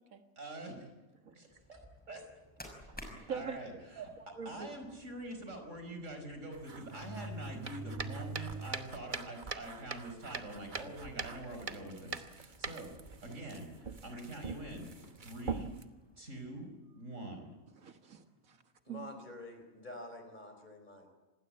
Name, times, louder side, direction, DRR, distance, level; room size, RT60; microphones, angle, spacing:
voice 1, 0.4-0.9 1.3-2.2 3.3-4.0 4.5-12.9 13.2-14.9 15.2-15.7 16.2-17.5, right 1 dB, 65° right, 5 dB, 5.4 m, -45 dB
sound 1, 1.5-16.7, equal, 5° left, 5.6 m, -58 dB
voice 2, 2.9-3.6 4.0-4.7 7.6-7.7 17.7-19.1, right 6 dB, 85° right, 6 dB, 1.9 m, -44 dB
sound 2, 3.1-3.4 4.1-4.2 4.5-4.6 5.9-6.0 6.7-9.0 9.4-9.5 10.4-10.5 10.8-11.2 11.8-12.0 13.2-14.1 15.0-15.3, right 2 dB, 15° right, 1.9 m, -46 dB
sound 3, 6.5-15.8, right 5 dB, 40° right, 1.2 m, -44 dB
voice 3, 18.9-21.1, left 1 dB, 35° left, 6 dB, 4.7 m, -48 dB
25.5 x 20.0 x 8.8 m, 1.1 s
omnidirectional pair, 1.4 m